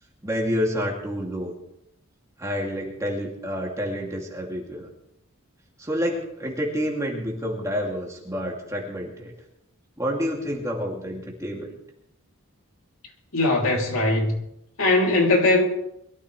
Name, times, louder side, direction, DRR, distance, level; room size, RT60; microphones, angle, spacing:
voice 1, 0.2-1.6 2.4-4.9 5.8-9.3 10.0-11.7, equal, 15° right, 2.5 m, -28 dB
voice 2, 13.3-14.4 14.8-15.6, left 2 dB, 75° left, 3.0 m, -20 dB
22.5 x 14.0 x 3.3 m
head